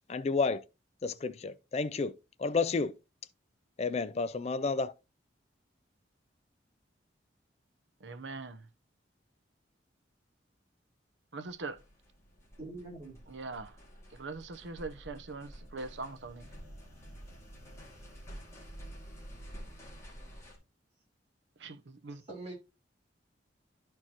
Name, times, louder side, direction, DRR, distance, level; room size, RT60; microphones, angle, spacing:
voice 1, 0.1-0.6 1.0-2.1 2.4-2.9 3.8-4.9, left 4 dB, 35° left, 0.4 m, -31 dB
voice 2, 8.0-8.6 11.3-11.8 13.3-13.7 14.1-16.5 21.6-22.2, right 3 dB, 75° right, 0.8 m, -42 dB
sound 1, 11.5-20.6, equal, 15° left, 2.2 m, -50 dB
voice 3, 12.6-13.2 22.1-22.5, right 2 dB, 35° right, 3.7 m, -44 dB
12.0 x 4.5 x 2.9 m
head